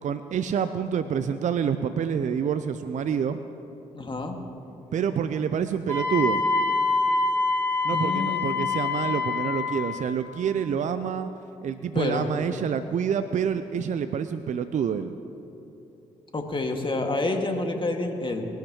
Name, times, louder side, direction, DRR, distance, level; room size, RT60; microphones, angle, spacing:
voice 1, 0.0-3.4 4.9-6.4 7.8-11.3 11.6-15.1, right 7 dB, 55° right, 11 dB, 0.6 m, -27 dB
voice 2, 3.9-4.4 7.9-8.5 11.9-12.3 16.3-18.5, left 2 dB, 35° left, 3 dB, 2.1 m, -28 dB
Wind instrument woodwind instrument, 5.9-10.0, left 4 dB, 20° left, 3.4 m, -25 dB
21.0 x 11.5 x 3.1 m, 2.9 s
hypercardioid pair, 40°, 15 cm